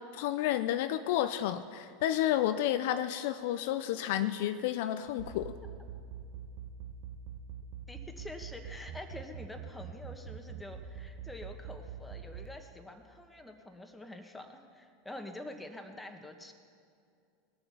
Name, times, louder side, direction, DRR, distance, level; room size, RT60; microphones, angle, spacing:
voice 1, 0.1-5.5, left 12 dB, 65° left, 11 dB, 0.5 m, -31 dB
sound 1, 5.1-12.5, right 11 dB, 65° right, 0.9 m, -43 dB
voice 2, 7.9-16.5, left 1 dB, 10° left, 4 dB, 1.5 m, -46 dB
20.0 x 6.9 x 5.7 m, 2.4 s
hypercardioid pair, 90°, 0 cm